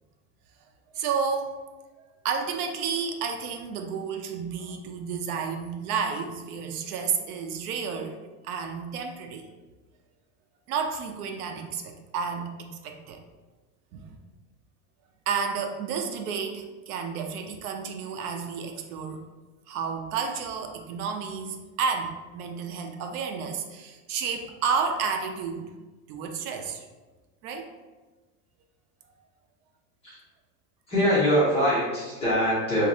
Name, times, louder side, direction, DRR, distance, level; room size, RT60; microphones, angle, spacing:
voice 1, 0.9-1.5 2.2-8.2 8.4-9.5 10.7-13.2 13.9-14.2 15.3-19.2 19.7-25.7 26.1-26.9 27.4-27.7, right 6 dB, 70° right, 4 dB, 0.6 m, -31 dB
voice 2, 30.9-32.9, equal, 15° left, -9 dB, 0.4 m, -23 dB
2.6 x 2.6 x 4.0 m, 1.2 s
supercardioid pair, 165°, 46 cm